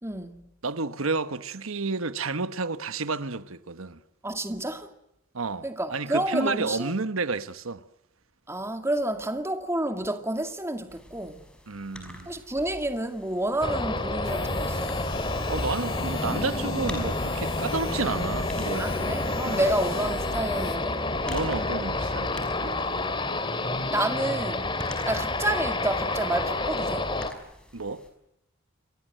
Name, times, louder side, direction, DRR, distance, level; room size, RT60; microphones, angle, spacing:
voice 1, 0.0-0.4 4.2-4.9 5.6-6.9 8.5-11.4 12.3-14.9 18.7-21.0 23.9-24.7 25.1-27.1, right 1 dB, 15° right, 2.2 m, -29 dB
voice 2, 0.6-4.0 5.3-7.8 11.7-12.4 15.5-18.9 19.4-19.7 21.3-22.7 27.7-28.1, right 3 dB, 85° right, 1.3 m, -31 dB
sound 1, 10.9-28.1, left 1 dB, 5° left, 5.4 m, -47 dB
sound 2, 13.6-27.3, left 2 dB, 25° left, 2.7 m, -29 dB
sound 3, 14.2-20.8, left 4 dB, 75° left, 3.3 m, -41 dB
29.5 x 23.5 x 7.8 m
head